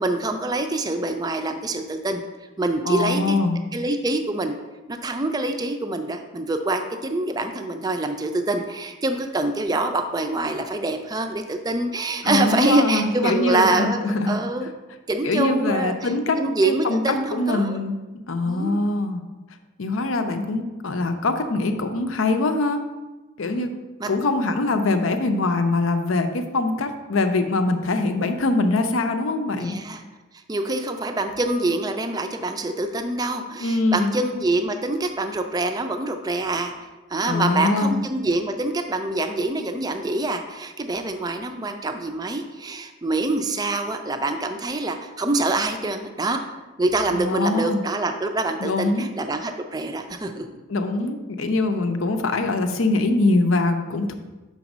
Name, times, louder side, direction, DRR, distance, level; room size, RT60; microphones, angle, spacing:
voice 1, 0.0-2.2 2.6-3.4 3.7-4.5 4.9-14.0 14.3-14.7 15.1-17.8 18.4-18.8 23.4-23.7 24.0-24.1 29.6-30.0 30.5-46.4 46.8-50.6, right 2 dB, 20° right, 6 dB, 0.4 m, -25 dB
voice 2, 2.8-3.6 12.2-14.4 15.2-18.0 18.3-19.2 19.8-22.8 23.4-23.7 24.1-29.8 33.6-34.1 37.2-38.0 47.1-47.8 48.6-49.1 50.7-54.1, left 2 dB, 75° left, 7 dB, 0.6 m, -23 dB
5.2 x 4.0 x 6.0 m, 1.2 s
head